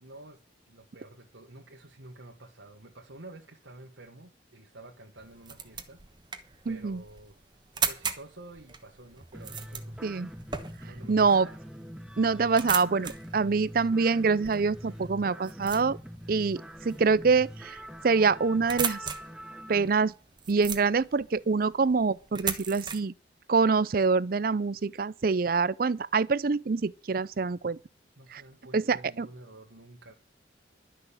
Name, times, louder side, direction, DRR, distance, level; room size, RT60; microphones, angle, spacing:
voice 1, 0.0-6.0 6.6-7.4 7.8-10.2 10.8-11.6 28.2-30.1, right 2 dB, 85° right, 1.6 m, -50 dB
sound 1, 5.2-23.0, right 6 dB, 25° right, 1.2 m, -39 dB
voice 2, 6.7-7.0 10.0-10.3 11.1-11.5 12.2-16.0 16.3-17.8 18.0-19.0 19.7-20.1 20.5-23.1 23.5-27.8 28.3-28.4 28.7-29.3, right 4 dB, 50° right, 0.5 m, -25 dB
sound 2, 9.3-19.9, equal, 5° right, 0.8 m, -44 dB
12.0 x 6.3 x 8.6 m
head